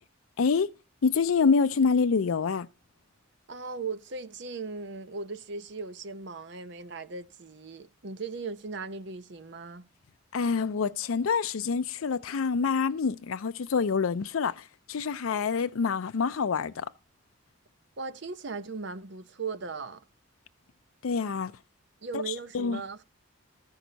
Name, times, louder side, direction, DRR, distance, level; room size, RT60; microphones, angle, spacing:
voice 1, 0.4-0.7 1.0-2.7 10.3-16.9 21.0-21.5 22.1-22.8, left 5 dB, 85° left, 0.5 m, -26 dB
voice 2, 3.5-9.8 18.0-20.0 22.0-23.0, right 4 dB, 60° right, 0.8 m, -38 dB
13.5 x 5.9 x 4.0 m
head